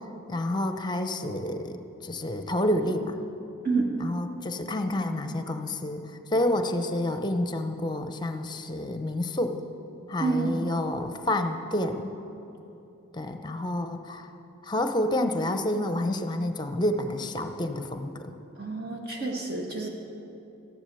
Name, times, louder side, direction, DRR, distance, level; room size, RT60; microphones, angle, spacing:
voice 1, 0.3-1.8 2.0-3.2 4.0-6.0 6.3-9.6 10.1-12.1 13.1-14.3 14.6-18.3, left 1 dB, 20° left, 7 dB, 0.7 m, -29 dB
voice 2, 10.2-10.6 18.6-19.9, right 3 dB, 50° right, 0 dB, 1.6 m, -28 dB
13.5 x 10.5 x 6.9 m, 2.9 s
head